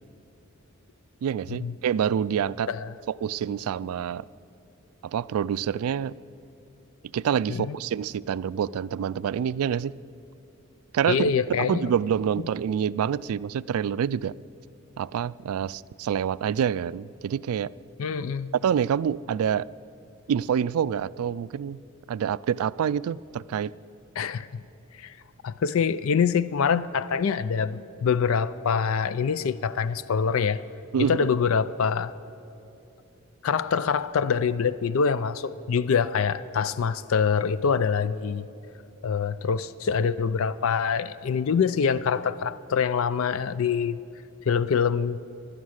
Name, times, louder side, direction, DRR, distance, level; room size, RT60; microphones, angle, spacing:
voice 1, 1.2-2.7 3.1-4.2 5.0-6.1 7.1-10.0 10.9-11.3 11.6-14.3 15.0-17.7 18.6-19.7 20.3-21.8 22.1-23.7 30.9-31.3, right 8 dB, 80° right, 0.3 m, -27 dB
voice 2, 11.1-11.9 18.0-18.5 24.2-24.6 25.0-25.1 25.4-30.6 31.1-32.1 33.4-38.5 39.0-44.0 44.5-45.2, left 6 dB, 70° left, 0.4 m, -25 dB
17.0 x 11.5 x 6.4 m
head